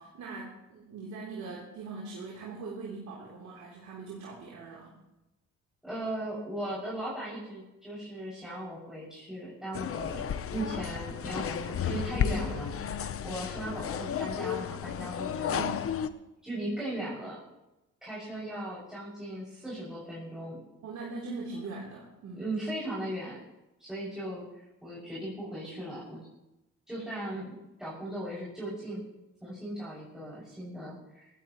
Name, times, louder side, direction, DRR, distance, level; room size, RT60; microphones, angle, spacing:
voice 1, 0.0-5.0 15.5-15.8 20.8-22.5, right 3 dB, 70° right, -4 dB, 3.5 m, -41 dB
voice 2, 5.8-10.2 10.5-12.7 13.2-15.6 16.4-17.4 18.0-20.6 22.3-23.4 23.8-26.3 26.9-29.0 29.4-31.3, right 1 dB, ahead, -8 dB, 6.6 m, -38 dB
sound 1, 9.7-16.1, left 8 dB, 50° left, 0.9 m, -33 dB
18.0 x 16.0 x 3.1 m, 0.94 s
cardioid pair, 90°, 30 cm